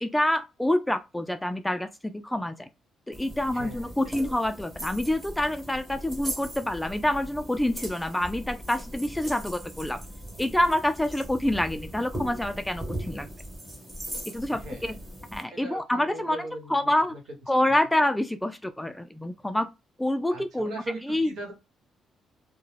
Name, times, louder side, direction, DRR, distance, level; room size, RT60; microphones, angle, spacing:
voice 1, 0.0-2.7 3.1-10.0 10.4-13.3 14.3-15.0 15.3-16.4 16.7-17.1 17.5-19.7 20.0-20.8 21.0-21.3, left 1 dB, 5° left, 0.3 m, -27 dB
sound 1, 3.1-15.4, right 1 dB, 20° right, 1.1 m, -39 dB
voice 2, 3.5-3.9 4.1-4.3 14.5-14.9 15.5-17.2 20.3-21.5, right 1 dB, 80° right, 1.1 m, -39 dB
2.3 x 2.1 x 3.2 m
cardioid pair, 90°, 0 cm